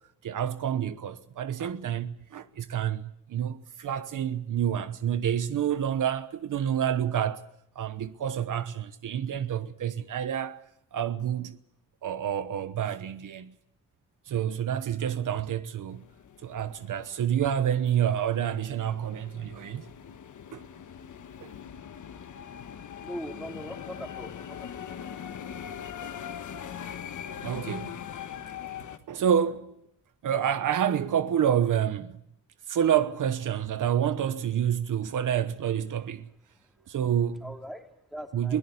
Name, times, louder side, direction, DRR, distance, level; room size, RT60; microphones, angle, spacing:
voice 1, 0.2-7.5 7.7-10.6 10.9-11.6 12.0-13.5 14.3-16.0 16.4-19.8 20.5-20.7 21.4-21.5 26.0-26.2 27.3-28.1 28.6-28.7 29.1-29.8 30.2-32.2 32.7-36.3 36.9-37.5 38.3-38.6, right 9 dB, 70° right, 1.1 m, -28 dB
sound 1, 15.9-29.0, left 9 dB, 65° left, 1.4 m, -42 dB
voice 2, 23.0-24.9 37.4-38.6, equal, ahead, 2.9 m, -41 dB
22.5 x 17.5 x 8.4 m
cardioid pair, 115°, 32 cm